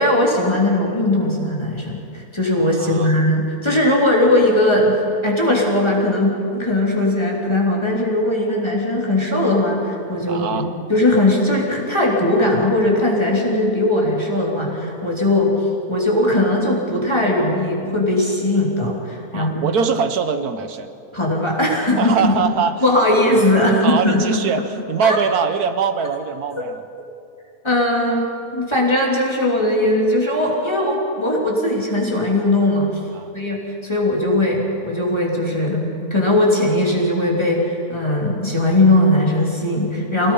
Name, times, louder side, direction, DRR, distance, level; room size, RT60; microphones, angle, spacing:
voice 1, 0.0-10.6 10.9-15.5 15.9-19.6 21.1-22.3 22.8-24.4 25.0-25.2 26.5-26.6 27.6-32.9 33.3-40.3, left 1 dB, 20° left, -3 dB, 3.2 m, -19 dB
voice 2, 2.6-3.2 10.3-10.7 19.3-20.9 22.0-22.8 23.1-23.4 23.8-26.9 28.1-28.2 33.1-33.3, right 6 dB, 80° right, 9 dB, 1.6 m, -22 dB
26.0 x 18.0 x 5.6 m, 2.6 s
omnidirectional pair, 1.6 m